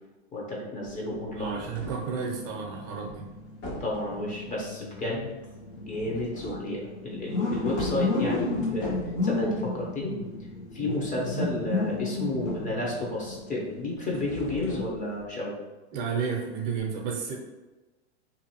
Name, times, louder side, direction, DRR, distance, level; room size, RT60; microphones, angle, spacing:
voice 1, 0.3-1.6 3.8-5.3 5.8-10.2 10.7-15.5, left 1 dB, 25° left, -3 dB, 0.7 m, -32 dB
sound 1, 0.9-2.1 3.0-3.3 3.6-4.3 5.8-6.7 7.1-7.3 7.7-9.3 13.7-15.3 16.7-16.8, left 1 dB, 65° left, 1.4 m, -40 dB
voice 2, 1.3-3.3 15.9-17.3, right 6 dB, 40° right, 0 dB, 0.6 m, -32 dB
sound 2, 1.5-14.7, left 3 dB, 85° left, 1.0 m, -33 dB
2.6 x 2.5 x 2.8 m, 1.1 s
hypercardioid pair, 120°, 34 cm